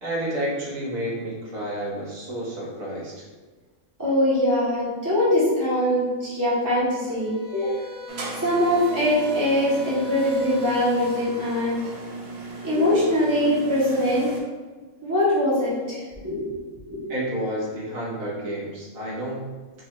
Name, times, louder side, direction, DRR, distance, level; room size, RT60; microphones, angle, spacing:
voice 1, 0.0-3.2 17.1-19.4, right 1 dB, 85° right, -6 dB, 1.6 m, -30 dB
voice 2, 4.0-7.7 8.4-11.8 12.6-14.3 15.0-16.5 16.9-17.1, left 1 dB, 20° right, -9 dB, 0.6 m, -22 dB
sound 1, 7.2-11.8, left 2 dB, 40° left, 1.0 m, -42 dB
sound 2, 8.1-14.4, right 3 dB, 60° right, 0.9 m, -36 dB
5.1 x 2.2 x 3.0 m, 1.4 s
omnidirectional pair, 1.4 m